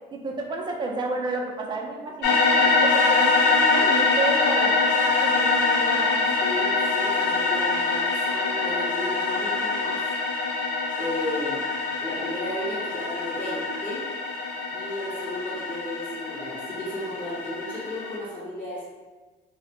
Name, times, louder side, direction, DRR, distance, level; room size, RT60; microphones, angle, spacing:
voice 1, 0.1-4.7 5.2-6.4, right 2 dB, 25° right, 0 dB, 0.4 m, -31 dB
sound 1, 2.2-18.2, left 3 dB, 85° left, 0.4 m, -24 dB
voice 2, 6.4-10.0 11.0-11.6 12.0-14.1 14.7-18.8, left 1 dB, 30° left, -10 dB, 0.7 m, -34 dB
2.5 x 2.1 x 2.8 m, 1.3 s
cardioid pair, 110°, 17 cm